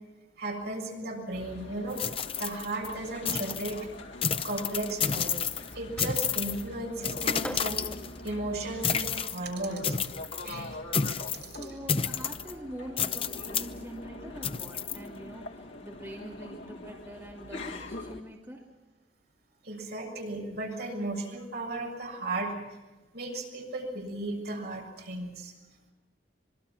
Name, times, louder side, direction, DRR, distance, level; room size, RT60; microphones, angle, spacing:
voice 1, 0.4-2.0 2.4-3.8 4.4-7.8 8.2-10.0 10.4-10.8 19.6-22.6 23.1-25.5, right 2 dB, 55° right, 0 dB, 7.1 m, -35 dB
sound 1, 1.3-18.2, left 2 dB, 80° left, 2.3 m, -44 dB
sound 2, 1.9-2.9 3.3-3.8 4.2-5.7 6.0-6.6 7.0-8.3 8.8-9.4 9.8-10.5 10.9-11.5 11.9-12.5 13.0-13.7 14.4-15.0, left 7 dB, 30° left, 0.7 m, -30 dB
Fireworks, 6.0-6.6 7.4-10.6, equal, 5° left, 1.8 m, -45 dB
voice 2, 11.3-18.6, right 1 dB, 15° right, -3 dB, 2.9 m, -44 dB
25.5 x 23.0 x 6.1 m, 1.2 s
head